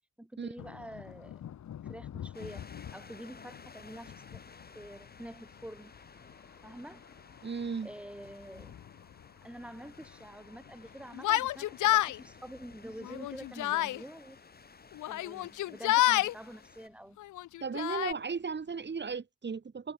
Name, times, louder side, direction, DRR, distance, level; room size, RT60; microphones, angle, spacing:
voice 1, 0.2-1.4 1.9-5.9 6.6-7.0 7.8-8.8 9.4-14.4 15.1-17.2, right 1 dB, 5° right, 7.4 m, -47 dB
sound 1, 0.6-19.2, left 10 dB, 65° left, 6.1 m, -52 dB
sound 2, 2.3-16.9, left 4 dB, 30° left, 6.9 m, -55 dB
voice 2, 7.4-7.9 17.6-19.9, right 5 dB, 35° right, 4.8 m, -35 dB
Yell, 11.2-12.2 13.0-14.0 15.0-16.3 17.2-18.1, left 15 dB, 80° left, 1.4 m, -28 dB
cardioid pair, 90°, 30 cm